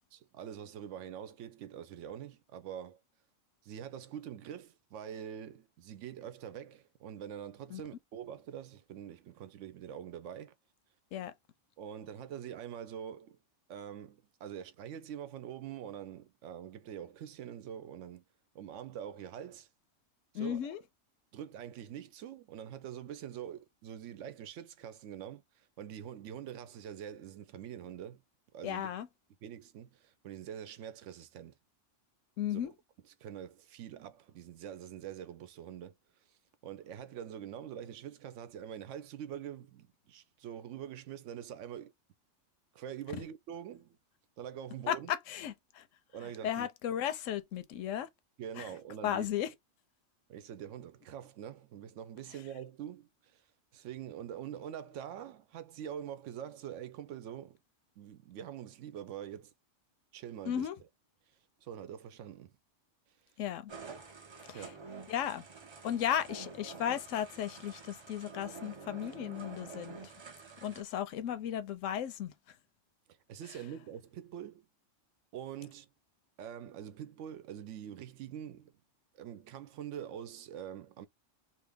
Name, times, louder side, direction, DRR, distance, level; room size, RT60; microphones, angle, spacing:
voice 1, 0.1-3.0 3.6-10.5 11.8-13.4 13.7-18.2 18.5-19.7 20.3-20.7 21.3-28.2 28.5-28.9 29.4-31.5 32.5-32.6 33.2-36.0 36.6-41.9 42.7-44.0 44.4-45.1 46.1-46.7 48.4-49.3 50.3-53.4 53.7-57.6 58.0-59.5 60.1-60.7 61.6-62.5 64.5-64.9 73.3-74.7 75.3-75.9 76.4-78.7 79.1-81.1, right 9 dB, 80° right, 0.9 m, -44 dB
voice 2, 20.3-20.8 28.6-29.1 32.4-32.7 44.9-45.0 45.3-45.8 46.4-48.1 48.6-48.7 49.0-49.5 60.5-60.8 63.4-63.7 64.5-64.7 65.1-65.4 65.8-70.1 70.6-72.3, left 10 dB, 85° left, 0.9 m, -35 dB
sound 1, 63.7-70.8, right 4 dB, 40° right, 0.4 m, -48 dB
2.7 x 2.6 x 3.4 m
omnidirectional pair, 1.3 m